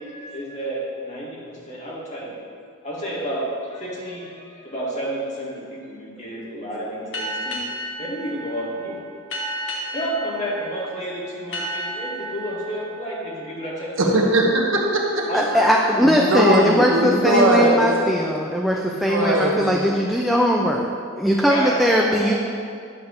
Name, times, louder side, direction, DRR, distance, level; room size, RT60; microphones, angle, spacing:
voice 1, 0.0-2.3 2.8-7.6 8.0-9.0 9.9-14.2 15.3-17.7 21.4-22.3, right 1 dB, 35° left, -6 dB, 2.0 m, -30 dB
sound 1, 7.1-14.4, right 1 dB, 65° left, 1.3 m, -33 dB
voice 2, 14.0-15.2 16.0-18.0 18.9-19.8, right 1 dB, 65° right, -1 dB, 1.2 m, -20 dB
voice 3, 15.3-20.9 21.2-22.3, equal, ahead, -1 dB, 0.4 m, -20 dB
10.0 x 3.5 x 6.5 m, 2.3 s
head